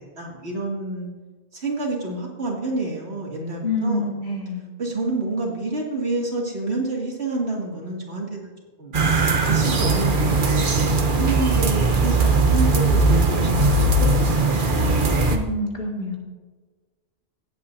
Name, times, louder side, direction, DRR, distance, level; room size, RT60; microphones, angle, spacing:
voice 1, 0.2-1.1 1.5-4.2 4.8-8.5 8.8-13.5 13.8-15.1, right 2 dB, 75° right, -2 dB, 2.6 m, -29 dB
voice 2, 3.6-4.6 15.3-16.2, left 2 dB, 60° left, -1 dB, 2.4 m, -26 dB
sound 1, 8.9-15.4, right 3 dB, 50° right, 1.2 m, -19 dB
17.5 x 8.4 x 2.7 m, 1.4 s
omnidirectional pair, 1.1 m